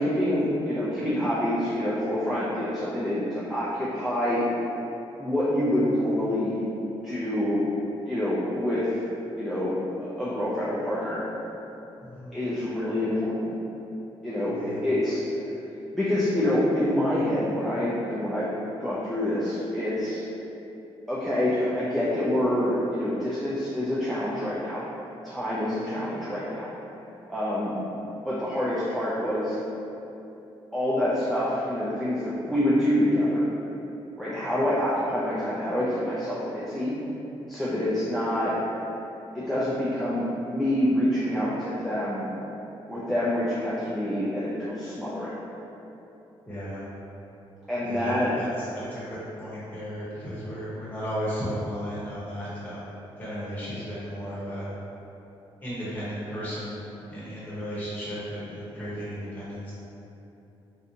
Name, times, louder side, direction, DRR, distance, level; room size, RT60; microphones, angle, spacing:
voice 1, 0.0-4.4 5.2-6.7 7.0-7.7 8.1-9.0 9.4-11.2 12.3-13.6 14.2-15.2 15.9-18.5 18.8-20.2 21.1-24.8 25.2-26.7 27.3-27.7 28.2-29.6 30.7-33.4 34.2-36.9 37.5-38.5 39.3-42.3 42.9-45.3 47.7-48.3, left 1 dB, ahead, -9 dB, 0.4 m, -26 dB
voice 2, 12.0-12.4 14.5-14.8 25.9-26.2 34.4-34.6 46.5-46.9 47.8-52.9 53.2-54.7 55.6-56.8 57.1-59.7, equal, 15° left, -10 dB, 0.9 m, -35 dB
3.3 x 2.6 x 2.7 m, 3.0 s
wide cardioid pair, 165°, 10 cm